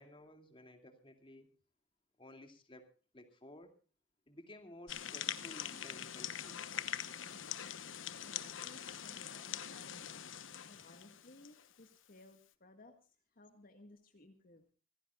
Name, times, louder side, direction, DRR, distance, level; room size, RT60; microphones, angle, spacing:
voice 1, 0.0-1.5 2.2-2.9 3.1-3.7 4.3-6.6, left 1 dB, 25° left, 6 dB, 2.6 m, -55 dB
sound 1, 4.9-11.7, left 9 dB, 90° left, 1.1 m, -43 dB
voice 2, 7.1-7.4 8.2-14.7, left 2 dB, 50° left, 4 dB, 1.9 m, -60 dB
26.0 x 16.0 x 2.4 m, 0.37 s
head